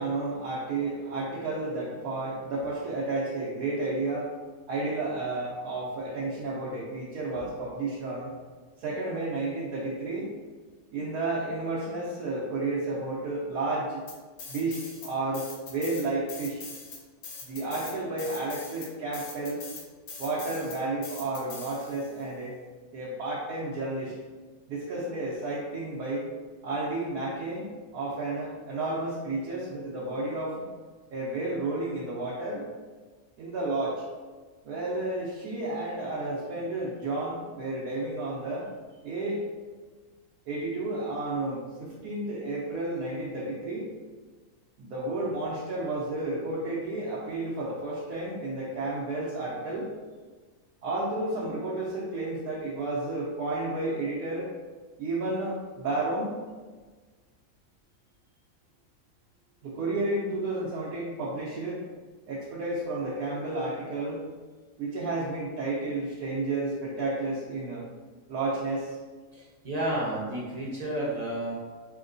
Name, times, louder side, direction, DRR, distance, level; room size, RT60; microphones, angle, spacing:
voice 1, 0.0-4.3 4.7-8.3 8.8-10.3 10.9-14.0 14.5-16.7 17.5-19.6 20.2-22.6 22.9-24.1 24.7-26.3 26.6-30.6 31.1-32.7 33.4-34.0 34.6-38.7 39.0-39.4 40.5-43.9 44.8-49.9 50.8-54.5 55.0-56.3 59.6-61.8 62.3-64.2 64.8-67.8 68.3-69.0, right 2 dB, 80° right, -7 dB, 1.2 m, -31 dB
sound 1, 14.1-15.1 15.3-22.2, left 4 dB, 65° left, 1.0 m, -42 dB
voice 2, 69.3-71.5, right 1 dB, 35° right, -6 dB, 0.7 m, -31 dB
5.1 x 2.8 x 2.6 m, 1.4 s
omnidirectional pair, 1.5 m